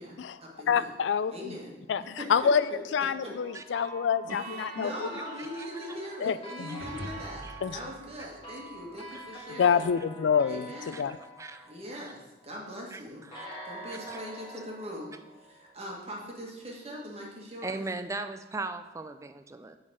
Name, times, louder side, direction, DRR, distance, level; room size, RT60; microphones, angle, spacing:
voice 1, 0.0-0.9 1.3-1.7 2.2-2.5 3.0-3.3 4.3-9.8 10.5-11.1 11.6-13.3 13.6-15.1 15.3-17.8, equal, 35° right, -2 dB, 1.7 m, -41 dB
voice 2, 0.7-1.3 1.9-2.0 2.3-4.9 6.2-6.8 7.6-7.8 9.6-11.2, left 7 dB, 75° left, 15 dB, 0.3 m, -27 dB
sound 1, 3.3-12.5 13.3-16.2, right 1 dB, 30° left, 2.1 m, -46 dB
voice 3, 6.7-7.6 8.2-8.3 9.1-9.4 10.9-12.1 12.9-13.0 13.3-13.4 13.9-14.2 17.6-19.8, right 3 dB, 15° right, 9 dB, 0.4 m, -39 dB
sound 2, 6.8-9.3, equal, 60° right, 1.5 m, -45 dB
8.0 x 4.0 x 6.3 m, 1.1 s
head